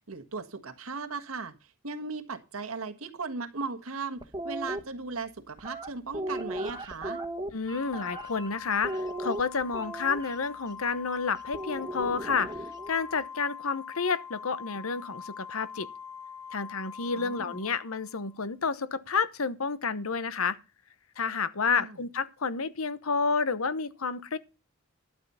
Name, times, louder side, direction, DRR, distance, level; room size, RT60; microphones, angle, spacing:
voice 1, 0.0-7.2 17.2-17.6 21.7-22.0, right 4 dB, 75° right, 1.5 m, -37 dB
sound 1, 4.2-4.8 5.6-8.5 8.8-10.3 11.5-12.9, right 1 dB, 20° right, 1.4 m, -36 dB
voice 2, 7.5-12.5 12.9-15.9 16.5-20.6 21.2-24.4, left 5 dB, 75° left, 1.0 m, -30 dB
Organ, 7.7-18.4, left 6 dB, 10° left, 0.9 m, -44 dB
12.0 x 7.3 x 5.6 m
head